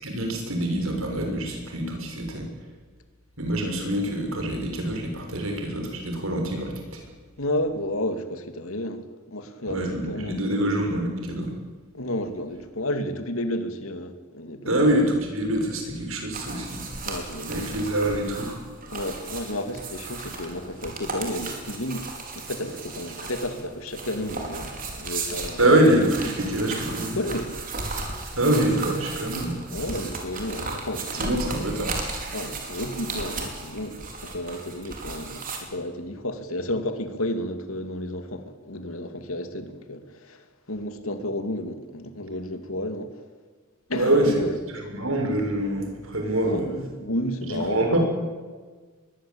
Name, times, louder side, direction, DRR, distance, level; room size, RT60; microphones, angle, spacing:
voice 1, 0.0-2.4 3.4-7.1 9.7-11.5 14.7-16.8 17.5-18.6 25.6-27.2 28.4-29.6 31.1-31.9 43.9-44.4 44.9-46.6 47.5-48.0, right 1 dB, 80° right, 7.0 m, -25 dB
voice 2, 7.4-9.0 9.3-10.3 11.9-14.9 17.1-17.8 18.9-22.1 22.3-25.6 27.0-27.5 29.7-31.7 32.3-43.3 43.9-44.6 46.4-47.9, left 1 dB, 85° left, 2.8 m, -32 dB
sound 1, 16.3-35.6, right 3 dB, 45° right, 5.3 m, -35 dB
23.5 x 21.0 x 9.0 m
head